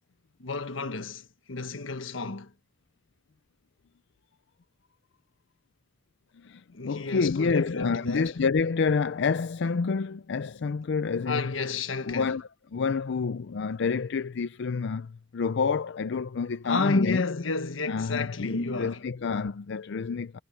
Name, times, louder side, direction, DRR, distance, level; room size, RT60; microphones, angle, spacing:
voice 1, 0.4-2.5 6.7-8.4 11.3-12.4 16.6-19.1, left 3 dB, 85° left, 1.4 m, -31 dB
voice 2, 6.4-11.5 12.1-17.2 17.9-20.4, left 5 dB, 65° left, 0.5 m, -28 dB
head